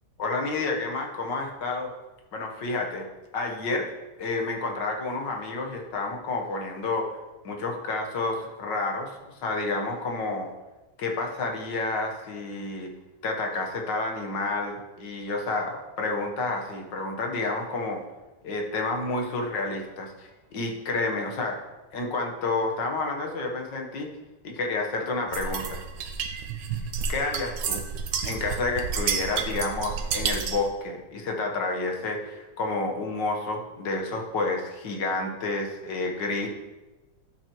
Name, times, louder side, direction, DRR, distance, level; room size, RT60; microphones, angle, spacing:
voice 1, 0.2-1.9 2.3-3.1 3.3-3.9 4.2-7.1 7.4-10.5 11.0-12.9 13.2-18.0 18.4-21.6 21.9-24.1 24.4-25.8 27.1-27.8 28.2-36.5, left 3 dB, 85° left, 1 dB, 1.9 m, -30 dB
sound 1, 25.3-30.7, right 6 dB, 80° right, 1.4 m, -30 dB
11.5 x 7.5 x 3.1 m, 1.1 s
omnidirectional pair, 1.9 m